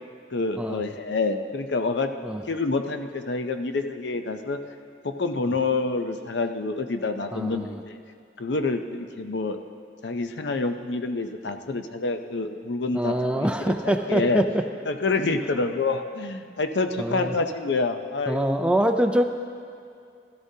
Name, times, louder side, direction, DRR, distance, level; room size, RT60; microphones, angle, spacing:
voice 1, 0.3-2.1 2.5-4.6 5.0-8.0 8.4-9.6 10.0-14.4 14.9-18.5, left 3 dB, 75° left, 7 dB, 0.6 m, -27 dB
voice 2, 7.3-7.8 12.9-14.5 17.0-17.3 18.2-19.2, right 1 dB, 5° right, 6 dB, 0.4 m, -24 dB
16.5 x 12.5 x 2.8 m, 2.3 s
head